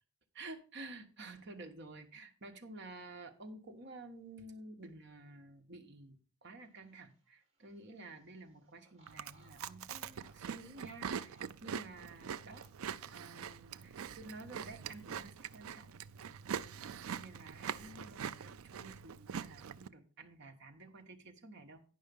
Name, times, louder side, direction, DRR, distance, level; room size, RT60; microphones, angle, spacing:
voice 1, 0.3-12.6 13.1-16.0 17.2-21.8, right 2 dB, 50° right, 4 dB, 1.2 m, -51 dB
sound 1, 6.6-14.8, right 2 dB, 30° right, 2.5 m, -69 dB
Chewing mastication, 9.1-19.9, right 7 dB, 70° right, 0.4 m, -44 dB
10.5 x 5.5 x 5.3 m, 0.39 s
head